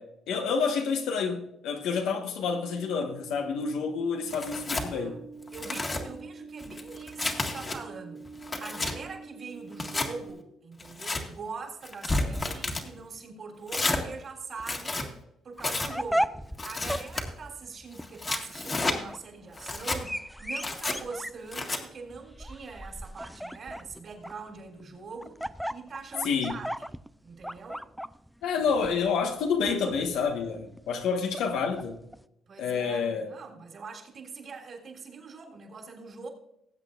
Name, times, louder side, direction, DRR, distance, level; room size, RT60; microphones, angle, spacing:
voice 1, 0.0-5.2 26.2-26.6 28.4-32.0 32.6-33.3, left 5 dB, 90° left, 1.4 m, -29 dB
sound 1, 2.3-10.3, right 4 dB, 15° right, 1.3 m, -46 dB
Tearing, 4.3-4.9 5.4-6.0 6.6-7.8 8.3-8.9 9.7-10.1 10.8-11.2 11.8-12.9 13.7-14.0 14.6-15.1 15.6-15.9 16.6-17.2 18.0-19.0 19.6-20.0 20.6-21.0 21.5-21.8, left 2 dB, 30° left, 1.7 m, -31 dB
voice 2, 4.7-5.2 5.5-8.3 8.6-15.1 15.4-16.4 16.6-25.4 25.7-26.9 27.2-27.9 28.5-28.6 32.5-36.3, right 4 dB, 55° right, 3.4 m, -43 dB
sound 2, 15.6-32.2, equal, ahead, 0.4 m, -37 dB
20.0 x 8.1 x 2.5 m
cardioid pair, 90°, 0 cm